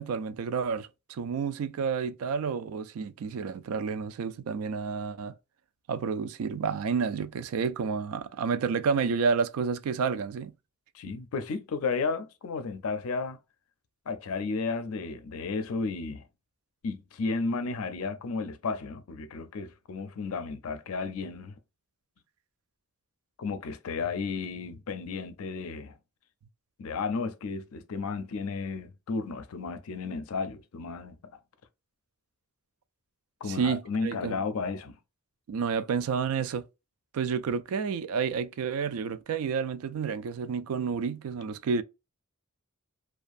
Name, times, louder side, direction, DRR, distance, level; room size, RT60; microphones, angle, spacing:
voice 1, 0.0-5.3 5.9-10.5 33.5-34.4 35.5-36.6 37.1-41.8, right 6 dB, 70° right, 0.3 m, -30 dB
voice 2, 10.9-13.4 14.1-16.3 16.8-21.6 23.4-26.0 26.8-31.2 33.4-35.0, left 4 dB, 70° left, 0.4 m, -33 dB
2.5 x 2.3 x 2.4 m
head